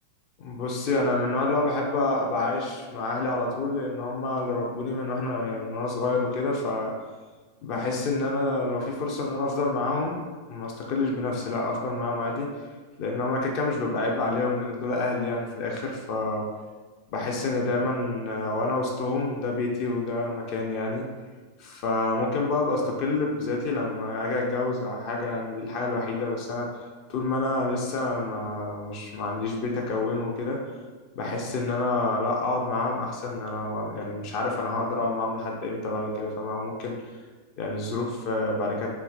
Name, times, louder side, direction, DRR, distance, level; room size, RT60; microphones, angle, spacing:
voice 1, 0.4-6.9 7.6-10.2 10.5-12.5 13.0-16.5 17.1-21.0 21.6-26.7 27.1-30.6 31.1-36.9 37.6-38.9, left 2 dB, 45° left, 0 dB, 0.4 m, -28 dB
3.1 x 2.6 x 2.3 m, 1.3 s
figure-of-eight pair, 90°, 0 cm